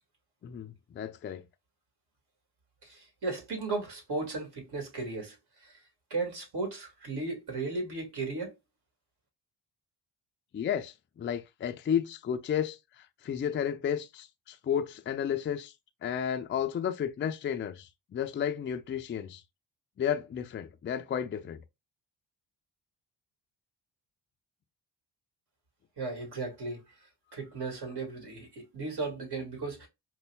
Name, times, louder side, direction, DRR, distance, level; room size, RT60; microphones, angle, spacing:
voice 1, 0.4-1.4 10.5-15.7 16.0-19.4 20.0-21.6, left 8 dB, 30° left, 0.4 m, -32 dB
voice 2, 2.8-5.8 6.1-8.5 26.0-26.8 27.3-29.9, right 3 dB, 60° right, 1.9 m, -35 dB
5.2 x 2.1 x 2.2 m
cardioid pair, 70°, 45 cm